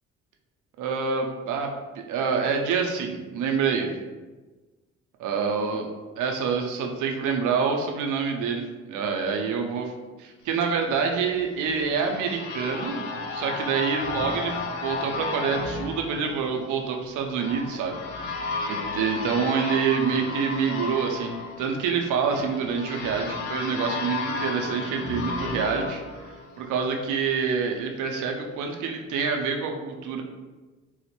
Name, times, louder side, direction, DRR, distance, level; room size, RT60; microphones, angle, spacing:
voice 1, 0.8-1.7 2.1-3.9 5.2-5.9 6.2-9.9 10.2-18.0 18.7-30.2, right 6 dB, 85° right, 3 dB, 0.5 m, -27 dB
sound 1, 11.3-27.0, left 3 dB, 80° left, 0.5 m, -33 dB
3.9 x 2.1 x 2.9 m, 1.2 s
supercardioid pair, 60°, 30 cm